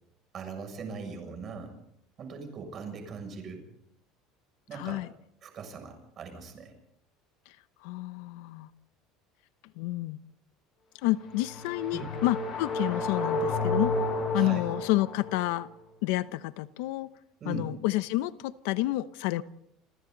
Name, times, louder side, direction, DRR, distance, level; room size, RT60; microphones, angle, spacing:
voice 1, 0.3-1.8 2.2-3.6 4.7-5.0 5.4-6.7 11.9-12.1 14.3-14.6 17.4-17.7, right 5 dB, 30° right, 7.0 m, -40 dB
voice 2, 4.8-5.1 7.8-8.7 9.8-10.2 11.0-13.9 14.3-15.7 16.0-17.1 17.5-19.4, left 17 dB, 80° left, 0.9 m, -29 dB
sound 1, 11.2-15.5, left 2 dB, 30° left, 7.8 m, -31 dB
28.5 x 27.0 x 4.1 m
cardioid pair, 160°, 0 cm